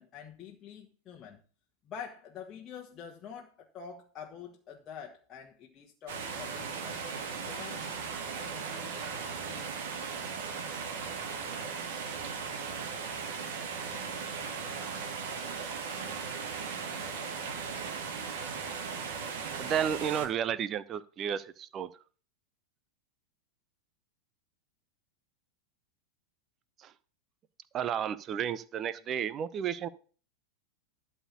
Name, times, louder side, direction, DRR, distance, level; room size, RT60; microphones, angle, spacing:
voice 1, 0.0-1.4 1.8-7.0 7.4-8.2 8.5-10.2, left 7 dB, 25° left, 1.4 m, -47 dB
sound 1, 6.1-20.3, right 5 dB, 55° right, 2.3 m, -37 dB
voice 2, 19.6-21.9 26.8-26.9 27.7-29.9, right 8 dB, 30° right, 0.8 m, -32 dB
12.5 x 4.4 x 8.3 m
figure-of-eight pair, 90°, 0 cm